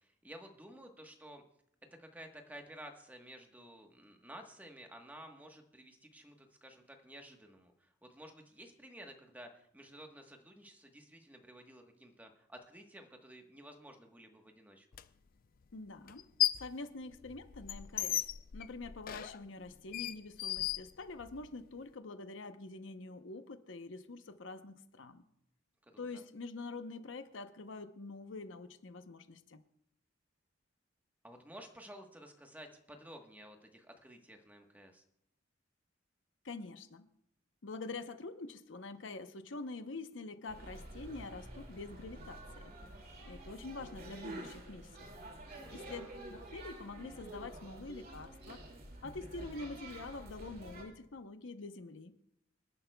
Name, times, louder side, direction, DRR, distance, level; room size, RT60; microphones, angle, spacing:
voice 1, 0.0-1.4 2.0-14.9 25.9-26.2 31.2-35.0 45.5-46.1, right 1 dB, 10° right, 4 dB, 1.2 m, -53 dB
sound 1, 14.9-15.0 16.1-16.8 17.1-21.5, left 13 dB, 50° left, 0.4 m, -36 dB
voice 2, 15.7-16.3 16.6-18.2 18.5-25.2 26.0-29.6 36.4-37.1 37.6-42.7 43.2-45.1 45.7-48.6 49.0-52.2, left 3 dB, 75° left, 9 dB, 0.8 m, -46 dB
sound 2, 40.5-50.8, right 1 dB, 50° right, 2.3 m, -49 dB
26.5 x 10.5 x 2.3 m, 0.74 s
head